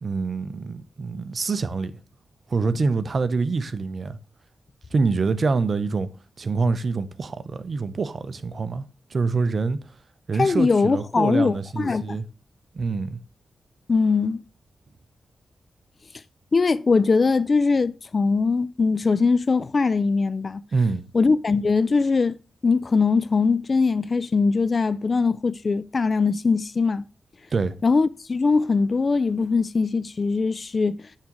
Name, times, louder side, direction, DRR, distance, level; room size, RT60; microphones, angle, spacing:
voice 1, 0.0-1.9 2.5-4.2 4.9-6.1 6.4-8.8 9.1-9.9 10.3-12.2 12.7-13.2 20.7-21.0 27.5-27.8, right 4 dB, 55° right, 0.7 m, -25 dB
voice 2, 10.4-12.2 13.9-14.4 16.5-20.6 21.1-22.4 22.6-27.0 27.8-31.1, left 4 dB, 50° left, 0.4 m, -21 dB
9.7 x 3.7 x 3.0 m
supercardioid pair, 45°, 0 cm